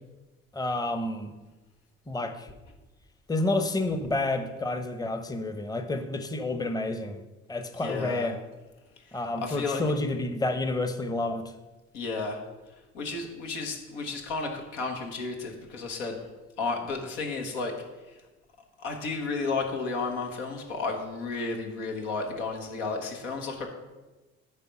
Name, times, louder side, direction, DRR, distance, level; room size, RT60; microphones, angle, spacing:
voice 1, 0.5-1.3 2.1-2.5 3.3-7.2 7.5-8.4 9.1-11.5, left 2 dB, 10° left, 8 dB, 0.8 m, -29 dB
voice 2, 7.8-8.3 9.4-9.8 11.9-12.4 12.9-16.2 16.6-17.7 18.8-23.7, left 4 dB, 80° left, 2 dB, 1.3 m, -32 dB
9.7 x 3.5 x 6.1 m, 1.1 s
hypercardioid pair, 50°, 36 cm